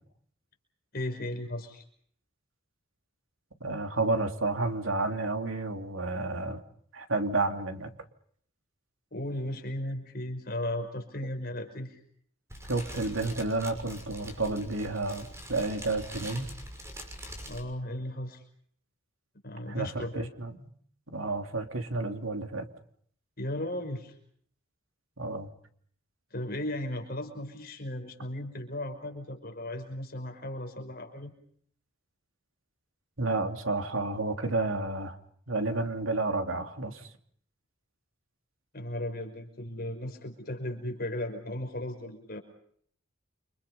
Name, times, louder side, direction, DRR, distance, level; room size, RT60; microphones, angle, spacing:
voice 1, 0.9-1.8 9.1-12.0 17.5-18.4 19.4-20.3 23.4-24.1 26.3-31.3 38.7-42.4, left 1 dB, 45° left, 5 dB, 5.5 m, -36 dB
voice 2, 3.6-6.6 6.9-7.9 12.7-16.5 19.7-20.7 21.1-22.6 25.2-25.5 33.2-35.2 35.5-37.0, right 2 dB, 75° right, 6 dB, 3.1 m, -31 dB
Fire, 12.5-17.6, equal, 15° right, 6.0 m, -43 dB
29.5 x 26.5 x 5.6 m, 0.62 s
head